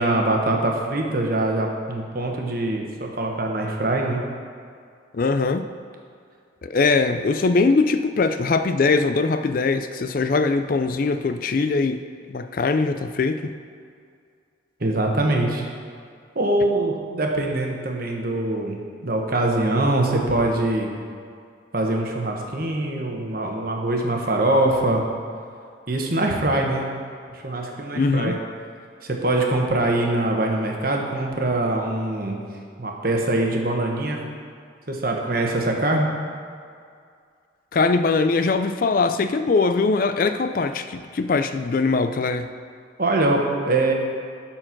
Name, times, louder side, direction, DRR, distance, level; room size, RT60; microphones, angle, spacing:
voice 1, 0.0-4.2 14.8-15.7 16.3-20.9 21.7-25.0 25.9-26.9 27.3-28.4 29.0-32.4 32.8-34.2 34.9-36.1 43.0-43.9, right 2 dB, 50° right, 1 dB, 1.2 m, -23 dB
voice 2, 5.1-5.7 6.6-12.0 12.3-13.5 27.9-28.4 37.7-42.5, left 4 dB, 45° left, 10 dB, 0.4 m, -21 dB
12.5 x 4.5 x 5.9 m, 2.2 s
head